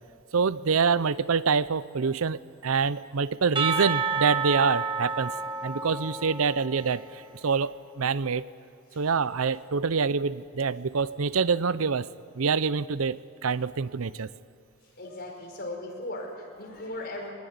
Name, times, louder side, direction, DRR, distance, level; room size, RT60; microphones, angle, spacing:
voice 1, 0.3-5.3 5.6-8.4 9.0-12.1 12.4-14.3, right 5 dB, 85° right, 17 dB, 0.7 m, -26 dB
Percussion / Church bell, 3.6-7.2, right 5 dB, 25° right, 2.1 m, -30 dB
voice 2, 15.0-17.3, left 1 dB, 50° left, 1 dB, 5.1 m, -37 dB
21.5 x 20.5 x 9.6 m, 2.4 s
head